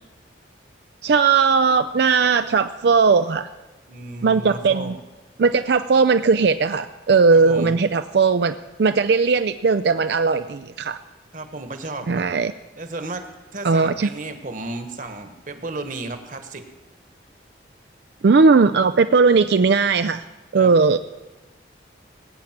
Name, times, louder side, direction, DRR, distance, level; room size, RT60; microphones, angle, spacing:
voice 1, 1.0-3.5 4.2-4.9 5.4-11.0 12.1-12.5 13.6-14.1 18.2-20.3 20.5-21.0, right 4 dB, 60° right, 10 dB, 0.4 m, -18 dB
voice 2, 3.9-4.9 7.3-7.7 11.3-12.3 12.8-13.3 13.5-16.7 20.5-20.8, right 2 dB, 45° right, 7 dB, 1.3 m, -33 dB
20.5 x 8.6 x 6.0 m, 1.1 s
head